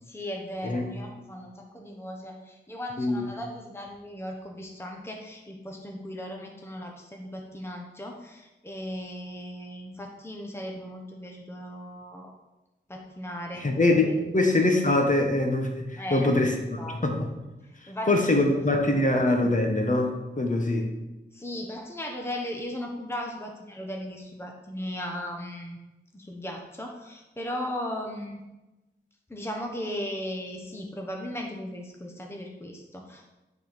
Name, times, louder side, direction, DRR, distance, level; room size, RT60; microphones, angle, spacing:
voice 1, 0.0-12.3 12.9-13.7 14.0-14.1 16.0-17.1 17.6-18.5 21.3-25.8 26.1-28.4 29.3-33.3, equal, 10° left, 1 dB, 1.1 m, -37 dB
voice 2, 13.5-17.3 17.8-20.9, left 2 dB, 40° left, 2 dB, 1.4 m, -24 dB
9.9 x 4.3 x 5.1 m, 1.0 s
wide cardioid pair, 80°, 20 cm